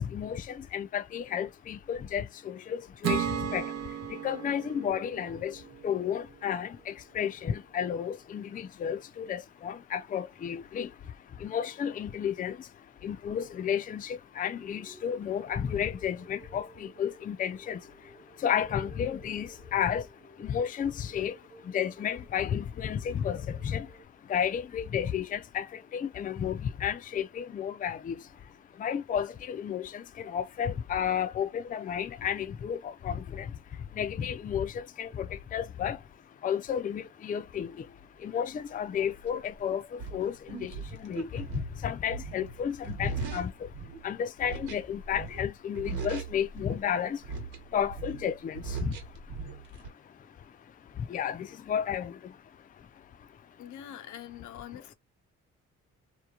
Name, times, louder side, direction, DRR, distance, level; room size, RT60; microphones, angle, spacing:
voice 1, 0.0-53.6, left 8 dB, 30° left, 0.4 m, -33 dB
Acoustic guitar / Strum, 3.0-6.5, right 9 dB, 60° right, 0.7 m, -35 dB
sound 1, 14.5-24.0, right 3 dB, 20° right, 0.9 m, -55 dB
sound 2, 39.3-39.4 40.0-44.1 44.4-45.5 45.8-46.8 47.2-49.9, right 6 dB, 85° right, 1.2 m, -39 dB
voice 2, 53.6-54.9, left 11 dB, 75° left, 0.5 m, -44 dB
2.9 x 2.2 x 2.3 m
cardioid pair, 90°, 30 cm